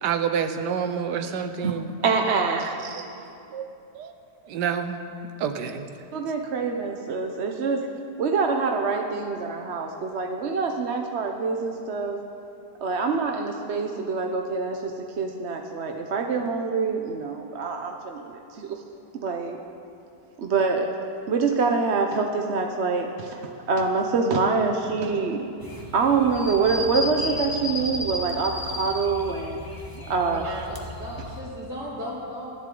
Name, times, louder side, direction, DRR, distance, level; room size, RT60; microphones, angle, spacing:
voice 1, 0.0-1.9 2.5-3.2 3.5-3.7 3.9-4.1 4.4-5.0 5.4-5.9, right 7 dB, 90° right, 8 dB, 1.5 m, -28 dB
voice 2, 2.0-3.0 6.1-7.8 8.2-12.2 12.8-18.8 19.2-19.6 20.4-20.9 21.3-23.4 23.7-25.5 25.9-29.6 30.0-30.7, right 4 dB, 50° right, 3 dB, 0.9 m, -25 dB
sound 1, 25.6-31.4, left 1 dB, 15° left, 1.1 m, -34 dB
voice 3, 30.2-32.5, equal, 10° right, -10 dB, 3.0 m, -36 dB
27.0 x 11.0 x 3.8 m, 2.7 s
omnidirectional pair, 1.8 m